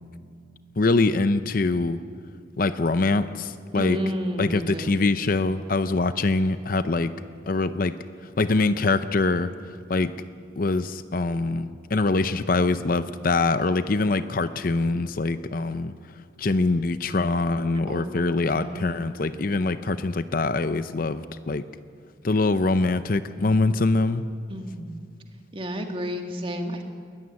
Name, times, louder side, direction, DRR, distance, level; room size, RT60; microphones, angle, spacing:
voice 1, 0.8-2.0 2.6-4.0 4.4-7.1 7.5-8.0 8.2-10.1 10.6-15.9 16.4-21.6 22.2-24.2, left 3 dB, 45° left, 12 dB, 0.6 m, -24 dB
voice 2, 3.8-4.9 17.9-19.1 24.5-24.9 25.5-26.8, equal, 30° right, 4 dB, 1.9 m, -31 dB
21.0 x 14.0 x 9.8 m, 2.2 s
head